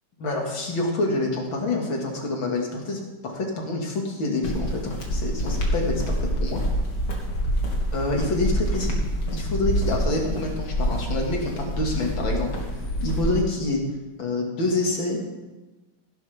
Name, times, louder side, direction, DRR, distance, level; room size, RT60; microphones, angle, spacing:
voice 1, 0.2-6.6 7.9-8.9 9.3-12.6 13.0-13.8 14.2-15.2, left 2 dB, 80° left, 0 dB, 2.9 m, -27 dB
sound 1, 4.4-13.4, equal, 65° left, 2.5 m, -26 dB
16.0 x 11.0 x 3.5 m, 1.2 s
omnidirectional pair, 2.1 m